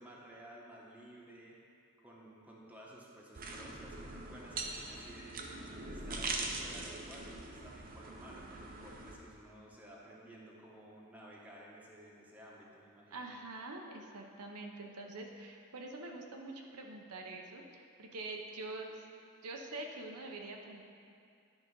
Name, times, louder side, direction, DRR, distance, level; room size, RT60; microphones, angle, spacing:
voice 1, 0.0-1.6 2.0-13.3, right 1 dB, 5° right, -4 dB, 1.1 m, -54 dB
sound 1, 3.3-9.2, right 3 dB, 40° right, 0.7 m, -42 dB
voice 2, 13.1-19.0 19.4-20.8, right 2 dB, 85° right, 1 dB, 0.8 m, -45 dB
10.5 x 4.0 x 5.4 m, 2.4 s
head